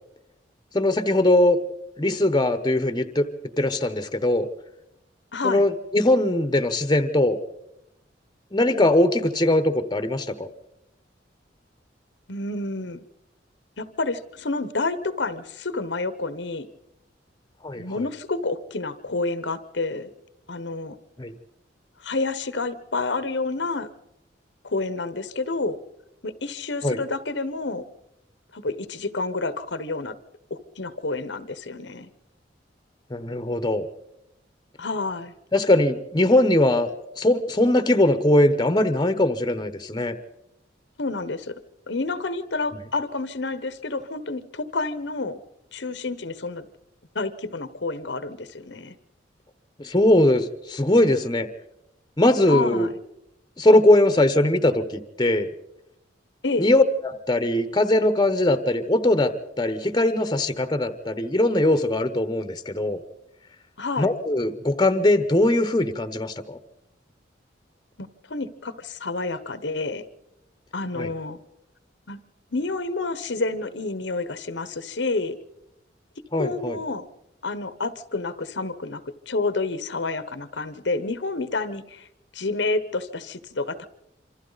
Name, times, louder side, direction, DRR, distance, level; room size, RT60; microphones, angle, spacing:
voice 1, 0.7-1.6 2.0-3.3 3.6-4.5 5.4-7.4 8.5-10.5 17.6-17.8 21.2-21.3 26.8-27.0 33.1-33.9 35.5-36.9 37.2-40.2 49.8-51.5 52.2-52.9 53.6-55.5 56.6-63.0 64.0-66.6 70.9-71.1 76.3-76.8, left 1 dB, 25° left, 11 dB, 1.0 m, -20 dB
voice 2, 5.3-5.6 12.3-13.0 13.8-16.7 17.8-20.1 20.5-21.0 22.0-23.9 24.6-25.8 26.2-27.8 28.5-30.2 30.5-32.1 34.8-35.3 41.0-41.5 41.9-45.4 45.7-46.7 47.1-49.0 52.5-52.9 56.4-56.7 63.8-64.1 68.0-70.0 70.7-71.4 72.1-72.2 72.5-75.4 76.3-77.1 77.4-82.1 82.3-83.9, left 3 dB, 75° left, 13 dB, 1.1 m, -29 dB
27.0 x 25.0 x 4.1 m, 0.84 s
head